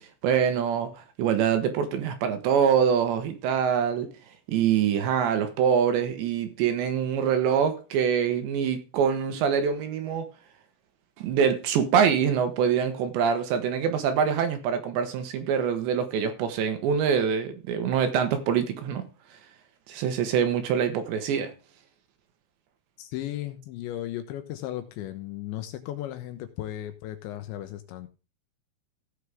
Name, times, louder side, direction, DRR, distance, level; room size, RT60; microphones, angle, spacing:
voice 1, 0.2-4.1 4.5-10.3 11.2-19.0 19.9-21.5, right 7 dB, 70° right, 3.1 m, -24 dB
voice 2, 23.0-28.1, left 13 dB, 75° left, 2.8 m, -35 dB
16.5 x 6.6 x 3.5 m
omnidirectional pair, 5.8 m